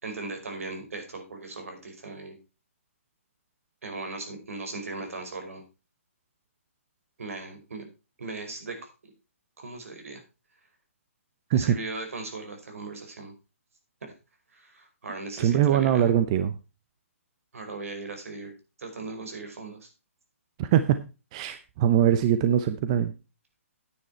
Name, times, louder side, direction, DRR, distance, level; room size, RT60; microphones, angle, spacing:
voice 1, 0.0-2.4 3.8-5.6 7.2-7.8 8.2-8.8 9.6-10.2 11.5-13.3 14.0-14.1 14.5-16.1 17.5-18.5 18.8-19.9, right 3 dB, 70° right, 5 dB, 5.1 m, -38 dB
voice 2, 15.4-16.5 20.6-21.0 21.3-23.1, right 10 dB, 25° right, 11 dB, 0.6 m, -22 dB
9.6 x 9.4 x 4.4 m, 0.29 s
hypercardioid pair, 160°, 8 cm